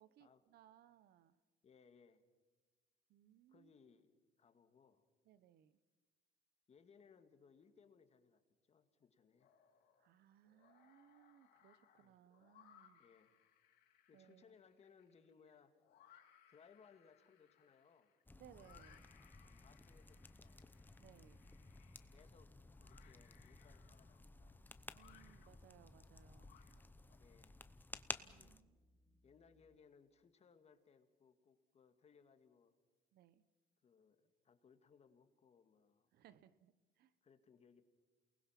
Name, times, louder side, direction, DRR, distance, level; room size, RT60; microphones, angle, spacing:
voice 1, 0.0-1.4 3.1-3.7 5.2-5.8 10.0-13.0 14.1-14.5 18.3-19.0 21.0-21.8 24.9-26.5 28.2-29.2 33.1-33.4 36.1-37.1, right 11 dB, 70° right, 1.0 m, -66 dB
voice 2, 1.6-2.2 3.5-5.0 6.7-8.4 8.7-9.5 12.0-12.2 13.0-13.3 14.1-15.8 16.5-18.1 19.6-20.6 22.1-24.7 27.2-27.6 28.3-28.6 29.2-32.7 33.8-36.1 37.2-37.8, left 6 dB, 40° left, 2.0 m, -67 dB
sound 1, 9.4-10.1 10.4-27.2, left 10 dB, 70° left, 3.4 m, -69 dB
sound 2, 18.3-28.6, left 2 dB, 10° left, 0.9 m, -55 dB
sound 3, 24.1-29.8, left 1 dB, 10° right, 2.5 m, -74 dB
28.5 x 20.0 x 5.9 m
cardioid pair, 110°, 17 cm